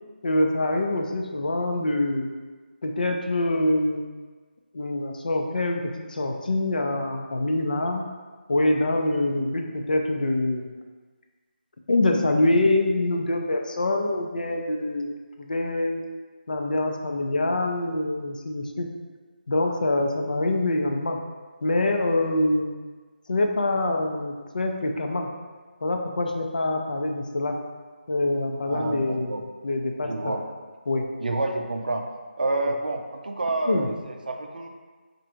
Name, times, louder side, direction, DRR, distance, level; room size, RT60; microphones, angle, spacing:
voice 1, 0.2-2.3 2.8-4.1 4.7-8.1 8.5-10.7 11.9-16.0 16.5-18.9 19.5-21.2 21.6-22.7 23.3-25.3 25.8-27.6 28.1-30.3 30.9-31.1 33.7-33.9, left 2 dB, 50° left, 3 dB, 0.5 m, -25 dB
voice 2, 28.7-29.4 30.0-30.4 31.2-32.1 32.4-34.7, right 2 dB, 55° right, 3 dB, 0.5 m, -29 dB
4.5 x 2.6 x 4.3 m, 1.4 s
figure-of-eight pair, 175°, 6 cm